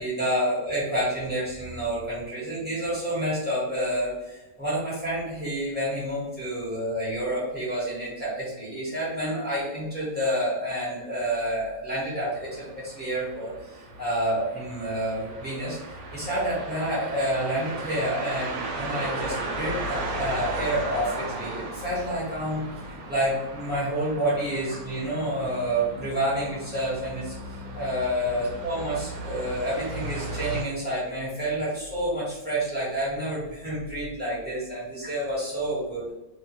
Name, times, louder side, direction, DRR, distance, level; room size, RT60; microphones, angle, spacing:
voice 1, 0.0-15.8 16.1-22.6 23.1-36.1, right 1 dB, 10° right, -9 dB, 1.0 m, -29 dB
sound 1, 12.2-30.6, right 2 dB, 80° right, 1.1 m, -36 dB
2.8 x 2.2 x 2.9 m, 1.1 s
omnidirectional pair, 1.6 m